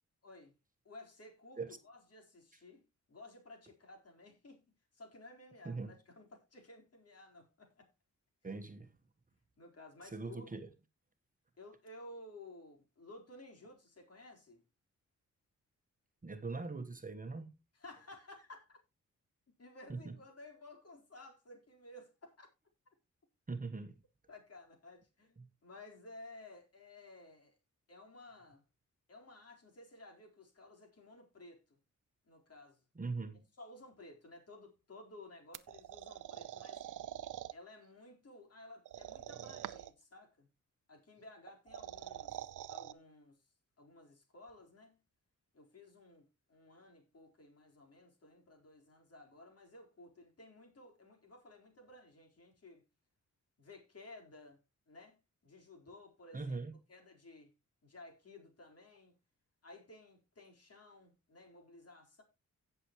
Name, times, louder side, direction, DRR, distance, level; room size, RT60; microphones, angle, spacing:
voice 1, 0.2-0.5 0.8-2.8 3.1-4.6 4.9-7.9 8.4-8.6 9.6-10.5 11.6-14.6 17.8-18.8 19.6-22.5 24.3-27.5 27.9-28.6 29.1-31.8 32.3-32.8 33.6-36.8 37.5-40.5 40.9-43.4 43.8-45.0 45.5-52.8 53.6-54.6 54.9-55.2 55.4-56.6 56.9-57.5 57.8-59.1 59.6-62.2, left 2 dB, 50° left, 4.2 m, -55 dB
voice 2, 5.6-6.0 8.4-8.9 10.0-10.7 16.2-17.5 19.9-20.2 23.5-23.9 25.4-25.5 32.9-33.4 56.3-56.7, right 3 dB, 25° right, 1.2 m, -41 dB
sound 1, 35.5-37.5 38.8-40.0 41.5-42.9, right 12 dB, 90° right, 0.7 m, -45 dB
16.5 x 6.8 x 3.0 m
cardioid pair, 90°, 30 cm